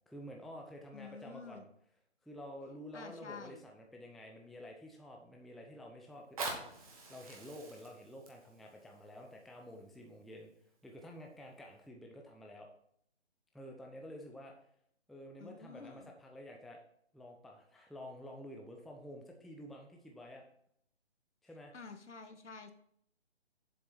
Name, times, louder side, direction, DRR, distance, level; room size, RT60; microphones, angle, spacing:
voice 1, 0.1-1.7 2.2-10.5 10.8-12.7 13.5-14.5 15.1-16.8 17.1-20.4 21.4-21.7, equal, ahead, 1 dB, 0.3 m, -50 dB
voice 2, 0.9-1.6 2.9-3.6 15.4-16.1 21.7-22.7, left 5 dB, 85° left, 8 dB, 1.5 m, -49 dB
Fire, 6.1-11.1 11.7-11.8, right 3 dB, 30° right, 1.6 m, -46 dB
7.6 x 6.7 x 4.3 m, 0.68 s
hypercardioid pair, 170°, 34 cm